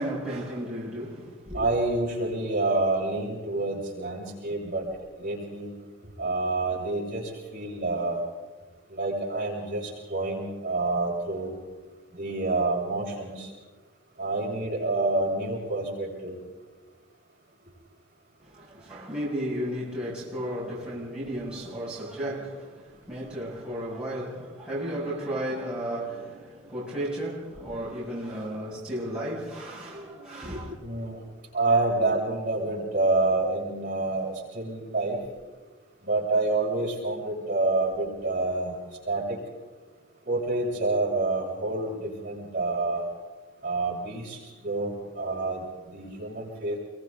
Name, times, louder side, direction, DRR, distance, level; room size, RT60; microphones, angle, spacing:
voice 1, 0.0-1.7 18.4-30.8, equal, 5° right, 7.0 m, -34 dB
voice 2, 1.5-4.9 5.2-5.7 6.2-8.2 8.9-11.6 12.1-13.5 14.2-16.4 30.8-31.2 31.5-35.2 36.0-38.8 39.0-39.4 40.3-43.0 43.6-46.8, right 2 dB, 40° right, 7.6 m, -28 dB
29.0 x 23.5 x 4.1 m
head